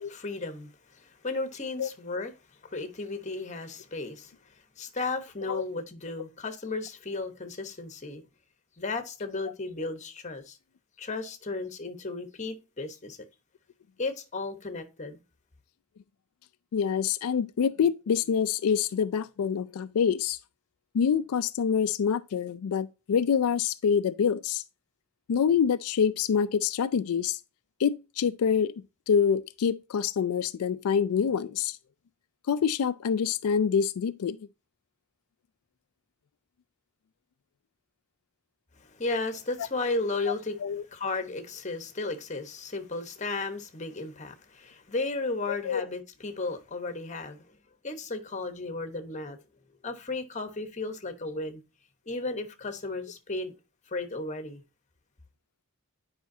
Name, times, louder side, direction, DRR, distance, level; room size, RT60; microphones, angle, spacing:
voice 1, 0.0-2.3 2.6-4.3 4.8-8.2 8.8-10.6 11.0-13.2 14.0-15.2 38.8-47.4 47.8-49.4 49.8-51.6 52.1-53.5 53.9-54.6, left 3 dB, 35° left, 1.1 m, -34 dB
voice 2, 16.7-20.4 20.9-24.6 25.3-27.4 27.8-31.8 32.5-34.5 40.6-40.8 45.5-45.9, left 7 dB, 90° left, 0.4 m, -26 dB
9.3 x 5.1 x 2.7 m
head